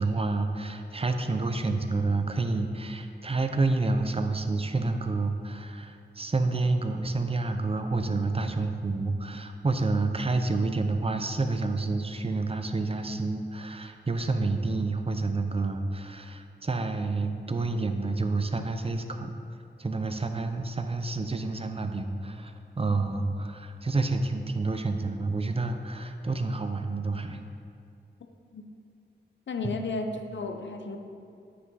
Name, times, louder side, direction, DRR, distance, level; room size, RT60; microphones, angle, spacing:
voice 1, 0.0-19.4 19.8-27.4 29.6-29.8, right 3 dB, 30° right, 6 dB, 0.5 m, -29 dB
voice 2, 29.5-31.0, left 3 dB, 85° left, 5 dB, 0.6 m, -33 dB
9.4 x 6.0 x 4.0 m, 2.5 s
wide cardioid pair, 90°, 18 cm